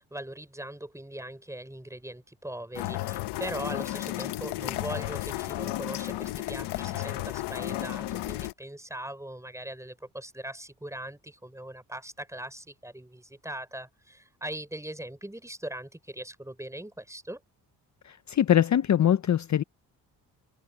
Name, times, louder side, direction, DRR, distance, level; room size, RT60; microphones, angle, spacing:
voice 1, 0.0-17.4, right 1 dB, 5° right, 4.9 m, -40 dB
sound 1, 2.7-8.5, left 16 dB, 85° left, 1.1 m, -33 dB
voice 2, 18.0-19.6, left 10 dB, 45° left, 0.7 m, -23 dB
supercardioid pair, 65°, 39 cm